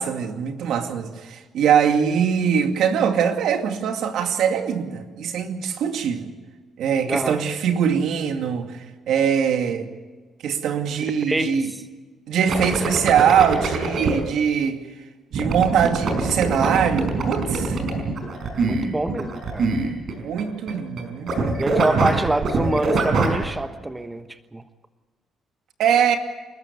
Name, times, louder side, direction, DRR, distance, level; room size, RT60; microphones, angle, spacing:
voice 1, 0.0-6.3 6.8-9.9 10.4-11.7 12.3-14.8 15.3-17.8 19.8-21.6 21.9-22.0 25.8-26.2, right 7 dB, 80° right, 6 dB, 2.3 m, -22 dB
voice 2, 7.1-7.4 11.1-11.8 18.6-19.7 21.6-24.3 24.5-24.6, right 2 dB, 15° right, 9 dB, 1.2 m, -25 dB
sound 1, 12.5-14.1 15.3-20.4 20.7-21.0 21.3-23.4, right 4 dB, 60° right, 5.3 m, -23 dB
28.5 x 13.5 x 8.3 m, 1.3 s
cardioid pair, 90°, 0 cm